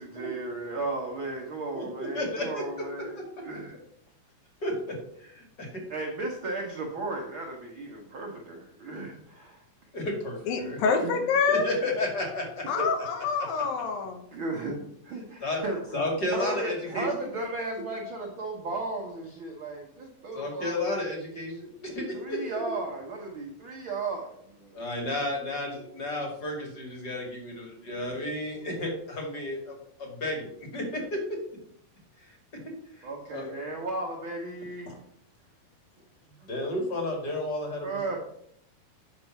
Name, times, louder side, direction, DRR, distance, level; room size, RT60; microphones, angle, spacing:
voice 1, 0.0-3.1 3.4-3.8 5.9-9.6 11.0-11.1 12.8-12.9 14.3-15.8 16.3-20.8 22.2-24.8 33.0-35.0 37.8-38.2, right 2 dB, 75° right, 0 dB, 1.1 m, -35 dB
voice 2, 1.7-2.6 3.1-3.2 4.6-5.7 9.9-10.8 11.5-12.6 15.4-15.6 15.9-17.3 20.3-22.4 24.7-31.2 32.2-32.4 32.9-33.5 34.8-35.0 36.4-38.2, left 1 dB, 35° left, 1 dB, 2.1 m, -32 dB
voice 3, 10.5-11.7 12.7-14.2, left 5 dB, 75° left, 5 dB, 2.8 m, -26 dB
8.7 x 5.4 x 5.9 m, 0.69 s
omnidirectional pair, 4.2 m